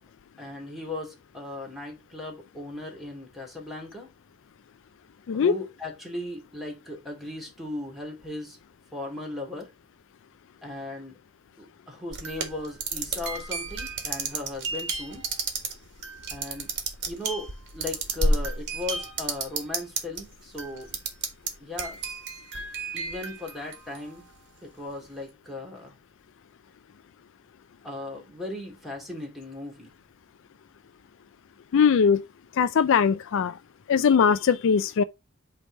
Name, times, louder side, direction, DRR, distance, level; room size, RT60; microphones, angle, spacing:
voice 1, 0.4-4.1 5.3-8.6 8.9-9.7 10.6-11.2 11.6-15.2 16.3-16.7 17.1-21.0 21.6-22.0 22.9-24.3 24.6-25.9 27.8-29.9, left 2 dB, ahead, 2.4 m, -37 dB
sound 1, 12.1-20.2 20.6-21.5 21.8-24.2, right 3 dB, 55° right, 1.8 m, -31 dB
voice 2, 31.7-32.2 32.6-33.6 33.9-35.0, left 6 dB, 60° left, 0.3 m, -20 dB
8.5 x 3.4 x 4.1 m
head